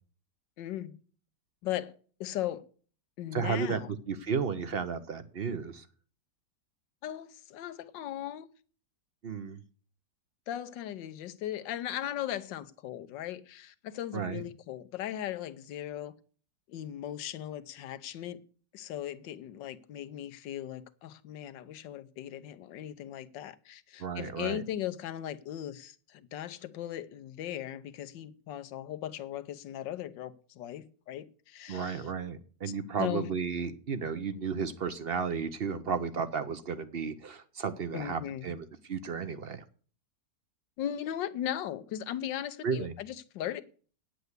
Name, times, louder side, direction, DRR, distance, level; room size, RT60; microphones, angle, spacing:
voice 1, 0.6-1.0 1.6-1.9 2.2-2.6 3.2-4.0 7.0-8.5 10.5-16.2 16.7-18.4 18.7-32.1 33.0-33.3 37.9-38.6 40.8-43.6, left 11 dB, 85° left, 1.5 m, -38 dB
voice 2, 3.3-5.9 9.2-9.6 14.1-14.4 24.0-24.6 31.7-39.6 42.6-42.9, right 6 dB, 50° right, 0.7 m, -33 dB
9.4 x 7.9 x 8.0 m
omnidirectional pair, 1.9 m